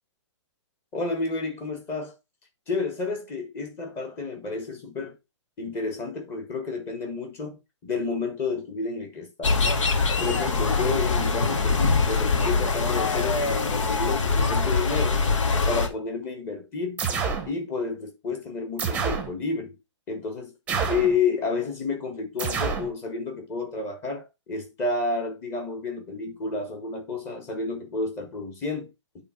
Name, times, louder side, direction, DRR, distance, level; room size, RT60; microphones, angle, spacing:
voice 1, 0.9-2.1 2.7-5.2 5.6-9.6 10.2-15.2 15.7-17.0 17.5-19.8 20.1-20.5 20.9-28.9, left 4 dB, 15° left, 1.4 m, -30 dB
sound 1, 9.4-15.9, left 4 dB, 80° left, 1.9 m, -23 dB
sound 2, 17.0-17.5 18.8-19.3 20.7-21.2 22.4-22.9, right 5 dB, 10° right, 0.9 m, -27 dB
8.8 x 3.8 x 4.4 m
hypercardioid pair, 170°, 16 cm